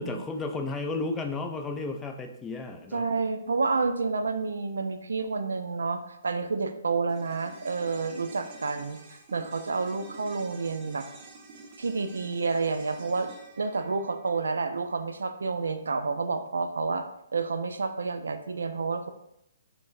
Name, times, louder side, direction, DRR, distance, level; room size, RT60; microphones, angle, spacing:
voice 1, 0.0-3.1, left 3 dB, 15° left, 4 dB, 0.3 m, -33 dB
voice 2, 2.9-11.1 11.8-13.3 13.6-17.1 17.3-19.1, right 4 dB, 80° right, 8 dB, 0.3 m, -29 dB
sound 1, 7.1-15.6 15.8-15.9, right 3 dB, 35° right, 0.6 m, -49 dB
3.7 x 2.0 x 2.6 m, 0.78 s
hypercardioid pair, 140°, 0 cm